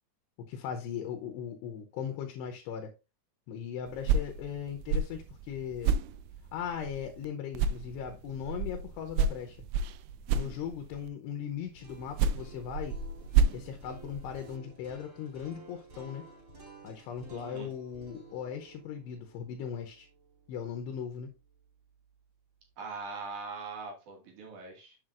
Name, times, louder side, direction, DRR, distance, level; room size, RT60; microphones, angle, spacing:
voice 1, 0.4-2.9 3.5-5.9 6.5-9.6 10.3-13.0 13.5-16.3 16.8-20.1 20.5-21.3, left 8 dB, 80° left, 2.8 m, -38 dB
sound 1, 3.9-7.3 7.5-11.1 11.9-14.6, right 5 dB, 90° right, 2.9 m, -31 dB
sound 2, 11.6-21.6, right 3 dB, 30° right, 3.9 m, -53 dB
voice 2, 17.3-17.7 22.8-25.0, right 4 dB, 55° right, 2.9 m, -41 dB
7.5 x 7.1 x 2.5 m
omnidirectional pair, 5.1 m